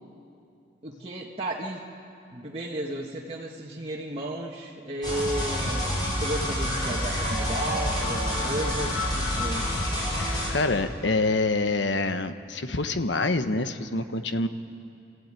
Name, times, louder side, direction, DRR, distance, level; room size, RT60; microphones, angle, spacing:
voice 1, 0.8-1.8 2.3-5.9 6.2-9.7, right 1 dB, 30° right, -4 dB, 1.6 m, -33 dB
sound 1, 5.0-10.5, left 1 dB, 20° left, 5.6 m, -28 dB
voice 2, 10.2-14.5, left 2 dB, 75° left, 9 dB, 1.1 m, -26 dB
28.5 x 14.5 x 9.0 m, 2.7 s
head